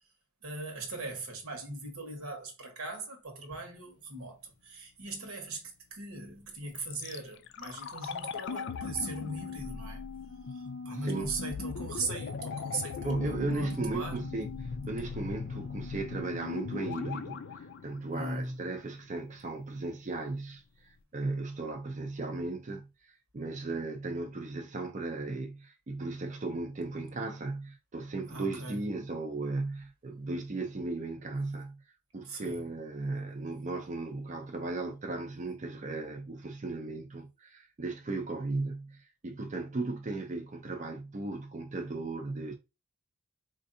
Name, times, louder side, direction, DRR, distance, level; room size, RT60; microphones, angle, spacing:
voice 1, 0.4-10.0 10.5-14.2 18.1-18.7 28.3-28.9 32.2-32.6, right 2 dB, 85° right, 1.2 m, -39 dB
sound 1, 6.7-18.7 19.0-19.1, left 5 dB, 55° left, 0.4 m, -39 dB
voice 2, 13.0-31.8 32.1-42.5, right 3 dB, 35° right, 0.4 m, -36 dB
4.4 x 2.6 x 2.6 m
head